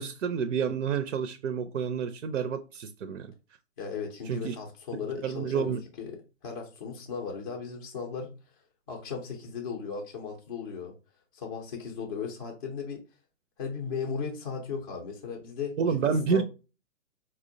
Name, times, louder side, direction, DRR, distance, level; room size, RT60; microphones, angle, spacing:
voice 1, 0.0-3.3 4.3-4.6 5.2-5.8 15.8-16.4, right 6 dB, 70° right, 0.5 m, -29 dB
voice 2, 3.8-5.7 6.0-8.3 8.9-10.9 11.3-13.0 13.6-16.4, left 6 dB, 25° left, 0.4 m, -36 dB
4.4 x 2.0 x 2.5 m
hypercardioid pair, 135°, 39 cm